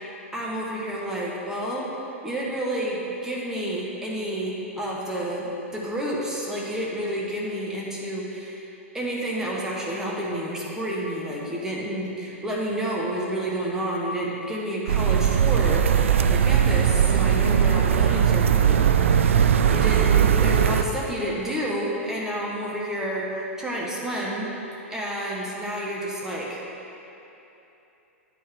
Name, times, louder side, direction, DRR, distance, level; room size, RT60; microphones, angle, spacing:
voice 1, 0.3-1.9 2.2-18.8 19.7-24.5 24.9-26.6, right 1 dB, 5° right, -4 dB, 1.1 m, -30 dB
sound 1, 14.9-20.8, right 8 dB, 65° right, 0.4 m, -19 dB
9.0 x 4.6 x 4.7 m, 3.0 s
figure-of-eight pair, 105°, 7 cm